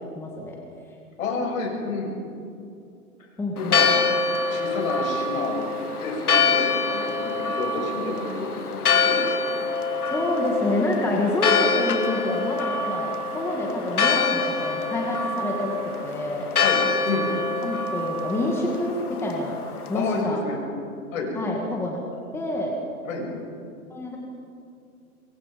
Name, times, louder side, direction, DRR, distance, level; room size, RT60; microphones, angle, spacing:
voice 1, 0.2-0.6 3.4-3.8 10.1-16.5 17.6-19.6 19.9-20.4 21.4-22.0 22.3-22.8 23.9-24.2, left 1 dB, 5° left, -1 dB, 2.0 m, -27 dB
voice 2, 1.2-2.1 3.6-3.9 4.5-5.6 6.0-9.2 16.6-17.3 19.9-20.6 21.1-21.3 23.1-23.3, left 3 dB, 65° left, 1 dB, 7.0 m, -29 dB
Church bell, 3.6-20.2, left 4 dB, 90° left, 2.2 m, -25 dB
24.5 x 23.5 x 5.3 m, 2.5 s
hypercardioid pair, 145°, 43 cm